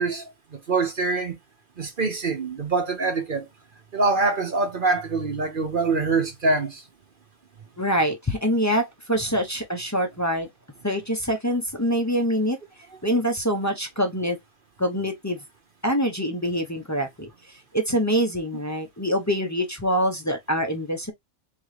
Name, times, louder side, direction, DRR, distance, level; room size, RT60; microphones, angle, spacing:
voice 1, 0.0-1.4 1.8-3.5 3.9-6.8, right 3 dB, 45° right, 0.8 m, -24 dB
voice 2, 7.8-10.5 10.8-12.6 13.0-14.4 14.8-15.4 15.8-17.3 17.7-21.1, equal, 20° left, 0.5 m, -25 dB
3.8 x 3.7 x 3.2 m
omnidirectional pair, 1.5 m